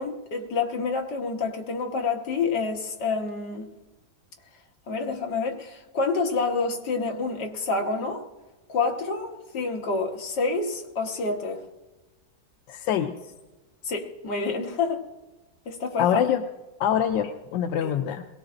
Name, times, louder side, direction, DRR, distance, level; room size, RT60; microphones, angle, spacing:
voice 1, 0.0-3.7 4.9-8.2 8.7-11.6 13.8-15.1 15.7-16.2 17.8-17.9, left 4 dB, 70° left, 2 dB, 1.9 m, -28 dB
voice 2, 12.7-13.1 16.0-16.4 16.8-18.2, left 9 dB, 85° left, 6 dB, 1.3 m, -24 dB
21.5 x 17.5 x 2.5 m, 1.1 s
omnidirectional pair, 1.9 m